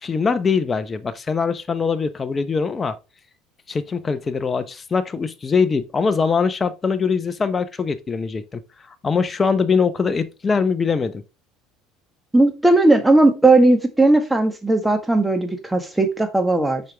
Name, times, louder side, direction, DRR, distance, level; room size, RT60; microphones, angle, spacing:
voice 1, 0.0-3.0 3.7-8.6 9.0-11.2, left 5 dB, 30° left, 0.8 m, -22 dB
voice 2, 12.3-16.8, right 2 dB, 10° right, 1.7 m, -17 dB
6.5 x 5.0 x 3.4 m
hypercardioid pair, 70°, 0 cm